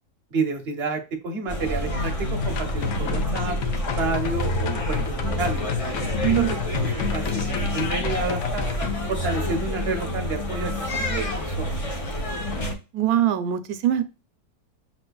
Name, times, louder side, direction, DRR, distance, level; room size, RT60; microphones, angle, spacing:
voice 1, 0.3-5.6 6.3-8.7 9.1-12.0, right 4 dB, 50° right, 6 dB, 0.8 m, -30 dB
sound 1, 1.5-12.7, equal, 35° left, 0.5 m, -28 dB
sound 2, 2.4-8.9, left 7 dB, 65° left, 1.0 m, -30 dB
voice 2, 6.2-6.8 12.9-14.0, right 10 dB, 70° right, 10 dB, 1.0 m, -23 dB
5.9 x 3.2 x 2.2 m, 0.29 s
omnidirectional pair, 1.7 m